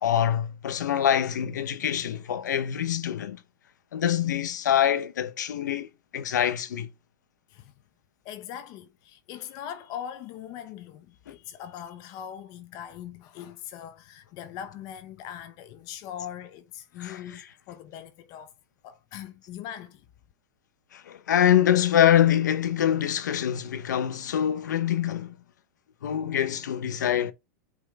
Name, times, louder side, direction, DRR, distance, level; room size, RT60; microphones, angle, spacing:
voice 1, 0.0-3.4 3.9-5.9 6.1-6.9 17.0-17.2 20.9-25.3 26.0-27.3, left 10 dB, 90° left, 0.9 m, -24 dB
voice 2, 8.2-18.5 18.8-20.1, left 10 dB, 45° left, 0.8 m, -41 dB
8.4 x 3.3 x 3.5 m
hypercardioid pair, 130°, 9 cm